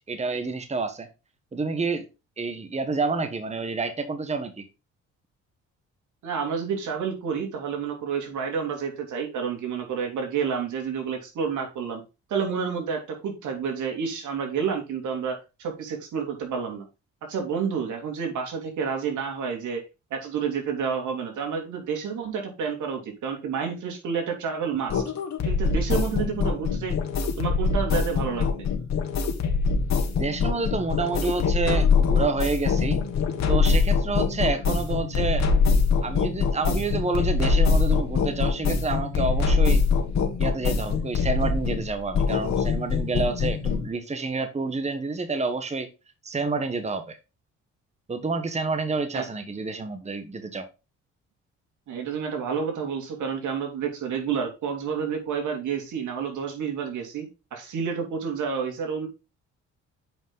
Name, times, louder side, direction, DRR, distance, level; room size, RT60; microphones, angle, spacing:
voice 1, 0.1-1.1 1.5-2.0 2.4-4.7 30.1-33.0 33.5-35.4 36.0-39.8 40.4-45.9 46.2-47.2 48.1-50.7, right 3 dB, 20° right, 8 dB, 1.3 m, -28 dB
voice 2, 6.2-12.0 12.3-16.8 17.3-19.8 20.1-25.0 25.4-27.0 27.4-28.7 49.1-49.2 51.9-59.1, right 6 dB, 75° right, 2 dB, 3.1 m, -29 dB
sound 1, 24.9-43.9, left 5 dB, 65° left, 1.8 m, -23 dB
8.9 x 5.5 x 3.8 m, 0.28 s
cardioid pair, 90°, 30 cm